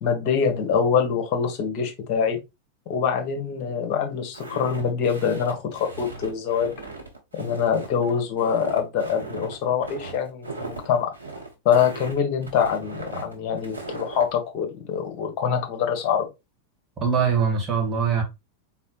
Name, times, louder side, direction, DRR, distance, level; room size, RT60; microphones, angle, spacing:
voice 1, 0.0-2.4 2.9-6.7 7.3-11.1 11.6-16.3, left 7 dB, 45° left, 1.7 m, -24 dB
Walk footsteps, 4.3-14.3, right 3 dB, 85° right, 1.2 m, -38 dB
voice 2, 17.0-18.2, right 6 dB, 20° right, 2.2 m, -22 dB
4.1 x 3.9 x 3.1 m
figure-of-eight pair, 90°, 0 cm